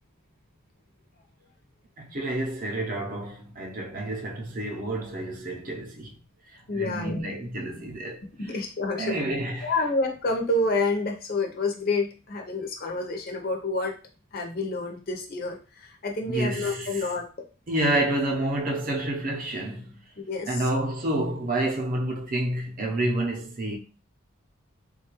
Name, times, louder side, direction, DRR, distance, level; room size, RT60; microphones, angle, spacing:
voice 1, 2.0-6.1 6.5-8.6 9.0-9.7 16.3-17.1 17.7-20.0 20.5-23.8, right 1 dB, 40° right, 0.6 m, -29 dB
voice 2, 6.7-7.2 8.4-9.2 9.6-14.0 14.3-17.5 20.2-20.7, left 2 dB, 45° left, 0.6 m, -28 dB
3.8 x 2.3 x 2.9 m
head